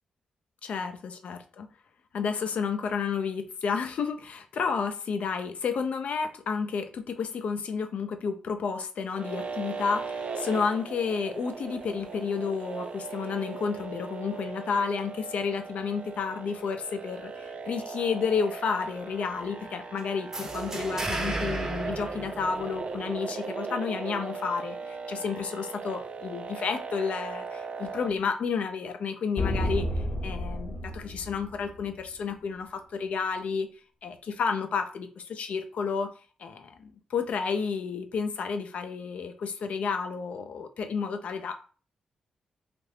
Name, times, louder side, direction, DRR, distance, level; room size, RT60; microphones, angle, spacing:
voice 1, 0.6-1.7 2.1-33.7 34.0-36.1 36.4-41.5, left 5 dB, 70° left, 7 dB, 0.5 m, -31 dB
sound 1, 9.1-28.1, right 5 dB, 55° right, 0.4 m, -38 dB
sound 2, 20.3-23.0, right 2 dB, 25° right, 0.7 m, -34 dB
sound 3, 29.4-32.0, left 1 dB, 40° left, 0.9 m, -31 dB
2.7 x 2.5 x 3.3 m, 0.39 s
cardioid pair, 60°, 2 cm